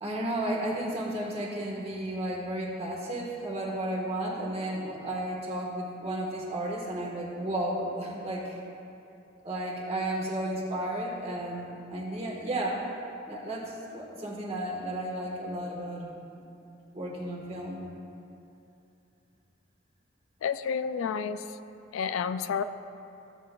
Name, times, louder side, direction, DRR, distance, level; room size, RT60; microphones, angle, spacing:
voice 1, 0.0-8.6 9.4-12.8 13.3-16.1 16.3-16.5 16.9-17.8, right 1 dB, 30° right, -2 dB, 1.3 m, -33 dB
voice 2, 20.4-21.4 21.9-22.6, left 6 dB, 80° left, 12 dB, 0.3 m, -30 dB
14.5 x 7.8 x 2.3 m, 2.7 s
head